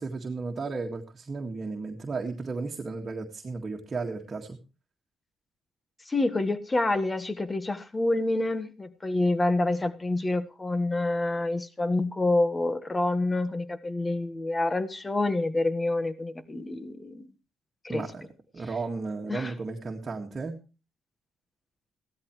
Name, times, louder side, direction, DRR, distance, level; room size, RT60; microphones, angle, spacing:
voice 1, 0.0-4.6 17.9-18.2 18.5-20.5, right 4 dB, 35° right, 1 dB, 1.9 m, -34 dB
voice 2, 6.1-17.3 17.8-18.1 19.3-19.5, left 2 dB, 20° left, 11 dB, 1.4 m, -27 dB
16.0 x 12.5 x 3.1 m, 0.32 s
cardioid pair, 90°, 0 cm